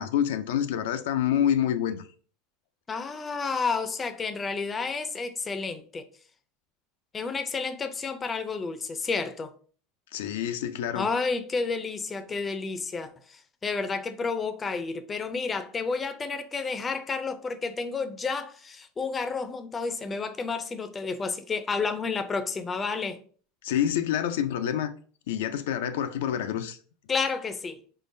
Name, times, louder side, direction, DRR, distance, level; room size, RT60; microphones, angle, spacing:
voice 1, 0.0-2.0 10.1-11.1 23.6-24.9 25.3-26.8, left 10 dB, 85° left, 0.4 m, -27 dB
voice 2, 2.9-6.0 7.1-9.5 10.9-23.2 27.1-27.8, left 4 dB, 20° left, 0.5 m, -31 dB
4.1 x 3.7 x 2.6 m
supercardioid pair, 125°, 0 cm